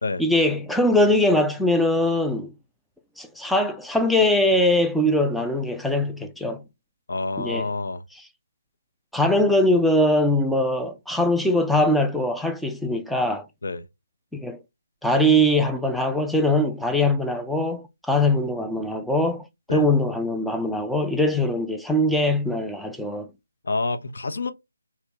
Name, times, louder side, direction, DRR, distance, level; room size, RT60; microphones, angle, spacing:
voice 1, 0.0-2.5 3.2-6.6 7.4-7.7 9.1-13.5 14.3-14.6 15.0-23.3, left 1 dB, ahead, 0.3 m, -22 dB
voice 2, 7.1-8.0 13.6-13.8 19.7-19.8 23.6-24.5, left 3 dB, 60° left, 0.7 m, -27 dB
3.2 x 2.9 x 2.8 m
figure-of-eight pair, 160°, 0 cm